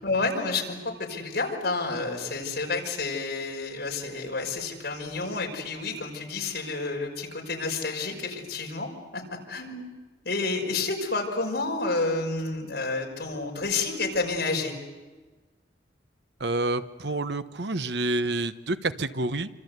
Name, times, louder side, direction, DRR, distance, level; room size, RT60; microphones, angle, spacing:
voice 1, 0.0-9.2 9.5-9.9 10.2-14.7, left 3 dB, 60° left, 1 dB, 5.7 m, -30 dB
voice 2, 16.4-19.5, right 2 dB, 65° right, 11 dB, 1.0 m, -28 dB
28.0 x 26.0 x 8.1 m, 1.3 s
head